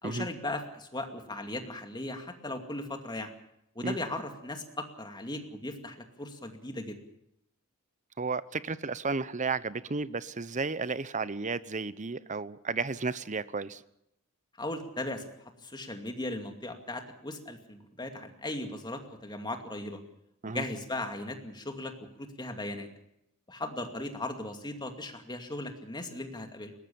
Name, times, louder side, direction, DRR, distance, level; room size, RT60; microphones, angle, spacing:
voice 1, 0.0-3.3 3.8-7.0 14.6-15.2 15.6-20.0 20.4-21.9 22.2-22.9 23.5-26.7, left 2 dB, 20° left, 5 dB, 2.4 m, -37 dB
voice 2, 8.2-13.8 20.4-20.7, right 4 dB, 35° right, 16 dB, 0.8 m, -33 dB
21.5 x 18.5 x 7.0 m, 0.79 s
head